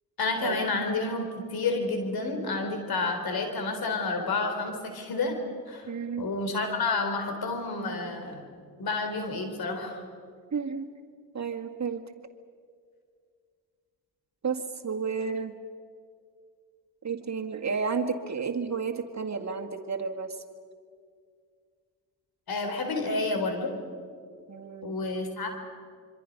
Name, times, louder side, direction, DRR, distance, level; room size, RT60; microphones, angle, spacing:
voice 1, 0.2-1.3 1.5-5.3 5.7-5.9 6.2-8.5 8.8-10.0 22.5-23.7 24.8-25.5, left 3 dB, 70° left, 5 dB, 4.0 m, -30 dB
voice 2, 5.9-6.3 10.5-10.9 11.3-12.0 14.4-15.5 17.0-20.4 24.5-24.9, right 5 dB, 45° right, 4 dB, 2.0 m, -31 dB
26.5 x 24.5 x 5.4 m, 2.1 s
supercardioid pair, 50°, 38 cm